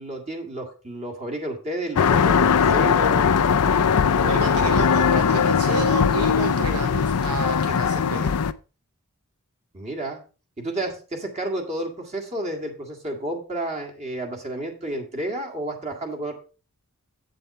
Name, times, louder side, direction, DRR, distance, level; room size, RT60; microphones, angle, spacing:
voice 1, 0.0-3.3 4.0-4.8 9.7-10.2 10.6-16.3, right 1 dB, 30° right, 2 dB, 1.8 m, -31 dB
sound 1, 2.0-8.5, left 6 dB, 85° left, 0.5 m, -20 dB
voice 2, 4.3-8.4, right 4 dB, 85° right, 7 dB, 0.9 m, -30 dB
8.1 x 7.7 x 4.2 m, 0.35 s
head